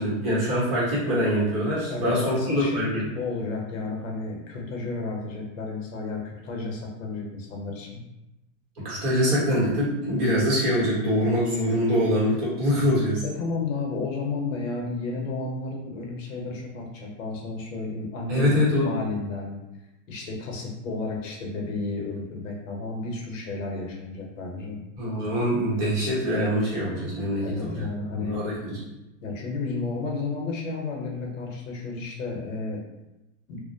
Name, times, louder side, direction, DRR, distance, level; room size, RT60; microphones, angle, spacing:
voice 1, 0.0-3.0 8.8-13.2 18.3-18.9 25.0-27.9 28.2-28.8, equal, 45° right, -8 dB, 1.3 m, -24 dB
voice 2, 1.9-2.8 3.2-8.0 13.2-19.6 20.1-24.8 27.4-28.4 29.2-32.8 33.5-33.6, left 3 dB, 70° left, 0 dB, 0.8 m, -32 dB
2.4 x 2.1 x 2.6 m, 0.94 s
supercardioid pair, 170°, 40 cm